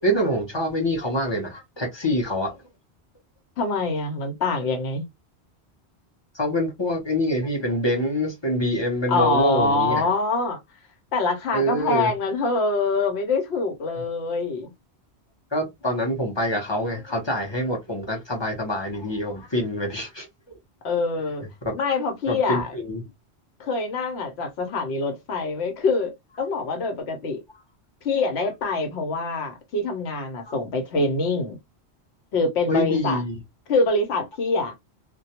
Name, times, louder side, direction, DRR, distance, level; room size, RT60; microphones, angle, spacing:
voice 1, 0.0-2.5 6.3-10.0 11.5-12.1 15.5-20.6 21.7-21.8 22.3-23.0 30.5-30.6 32.7-33.3, equal, 30° left, 0.6 m, -25 dB
voice 2, 3.6-5.0 9.1-10.6 11.1-14.7 20.8-21.4 21.7-22.7 23.6-27.4 28.0-31.6 32.3-33.2 33.7-34.7, left 3 dB, 75° left, 1.0 m, -25 dB
2.2 x 2.1 x 2.7 m
omnidirectional pair, 1.1 m